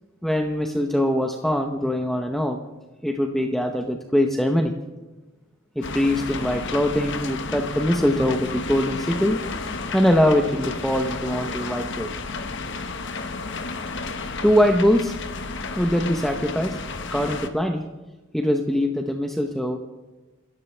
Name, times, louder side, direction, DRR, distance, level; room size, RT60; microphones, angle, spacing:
voice 1, 0.2-2.6 3.0-4.7 5.8-9.4 9.9-12.1 14.4-15.1 15.8-16.8 17.1-17.8 18.3-19.8, equal, ahead, 3 dB, 0.8 m, -22 dB
sound 1, 5.8-17.5, left 3 dB, 60° left, 1.2 m, -32 dB
28.0 x 14.0 x 3.3 m, 1.2 s
head